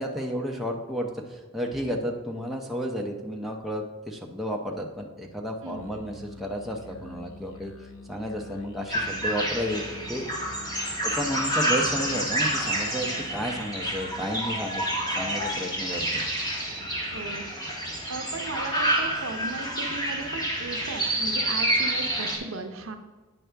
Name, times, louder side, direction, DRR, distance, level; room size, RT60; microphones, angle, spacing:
voice 1, 0.0-7.7 8.1-9.8 10.1-10.3 11.0-16.2, equal, ahead, -1 dB, 0.6 m, -32 dB
Musical instrument, 5.7-17.4, left 3 dB, 65° left, 0.7 m, -47 dB
sound 1, 8.9-22.4, right 1 dB, 20° left, 1.6 m, -28 dB
voice 2, 17.1-17.4 18.1-23.0, right 3 dB, 70° right, 5 dB, 0.8 m, -36 dB
9.2 x 5.6 x 3.4 m, 1.3 s
head